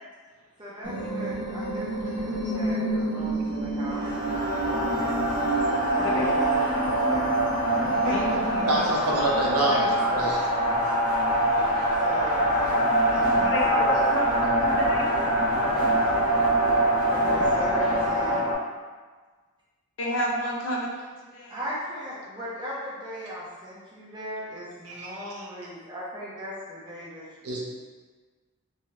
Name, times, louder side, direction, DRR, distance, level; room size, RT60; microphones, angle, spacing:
voice 1, 0.6-5.2 5.9-7.5 7.8-8.4 9.6-10.3 11.8-14.6 17.0-18.5 21.5-27.6, equal, 20° right, -8 dB, 0.6 m, -37 dB
sound 1, 0.8-8.8, right 1 dB, 65° right, 1.2 m, -29 dB
sound 2, 3.9-18.5, right 1 dB, 80° left, 1.4 m, -24 dB
voice 2, 6.0-6.4 8.0-8.9 13.4-15.0 20.0-21.6, equal, 55° left, -2 dB, 0.5 m, -31 dB
voice 3, 8.7-10.4 24.9-25.3 27.4-27.6, right 1 dB, 80° right, -3 dB, 0.7 m, -26 dB
3.0 x 2.3 x 2.8 m, 1.4 s
head